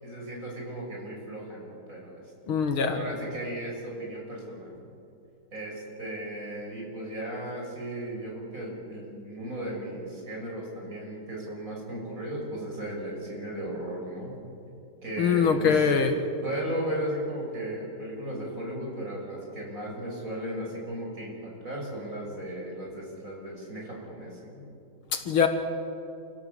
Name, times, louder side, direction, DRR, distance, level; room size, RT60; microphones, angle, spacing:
voice 1, 0.0-2.2 2.8-4.9 5.5-14.4 15.0-15.9 16.4-24.7, right 1 dB, 40° right, -2 dB, 6.6 m, -36 dB
voice 2, 2.5-3.0 15.2-16.2 25.1-25.5, left 6 dB, 85° left, 6 dB, 2.6 m, -23 dB
28.5 x 16.5 x 7.8 m, 2.7 s
omnidirectional pair, 2.2 m